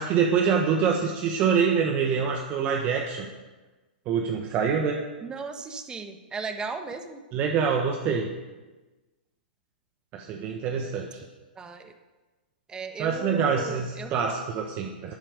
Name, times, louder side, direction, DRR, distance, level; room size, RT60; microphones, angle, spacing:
voice 1, 0.0-3.3 4.1-5.0 7.3-8.3 10.1-11.1 13.0-15.1, right 6 dB, 30° right, 2 dB, 1.3 m, -25 dB
voice 2, 5.2-7.2 11.5-11.9 12.7-14.3, right 4 dB, 15° right, 6 dB, 1.3 m, -36 dB
12.0 x 8.9 x 6.6 m, 1.2 s
hypercardioid pair, 135°, 6 cm